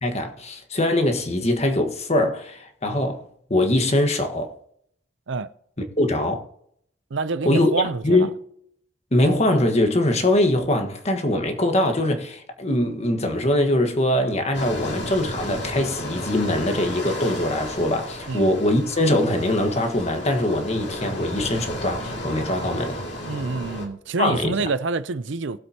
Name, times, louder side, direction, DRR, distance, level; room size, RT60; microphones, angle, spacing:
voice 1, 0.0-4.5 6.0-6.4 7.4-7.7 8.0-8.3 9.1-23.0 24.2-24.5, left 1 dB, 35° left, 1.5 m, -22 dB
voice 2, 7.1-8.3 18.3-18.5 23.2-25.6, right 4 dB, 70° right, 0.6 m, -27 dB
sound 1, 14.5-23.9, left 1 dB, 60° left, 2.6 m, -33 dB
19.5 x 7.9 x 2.9 m
head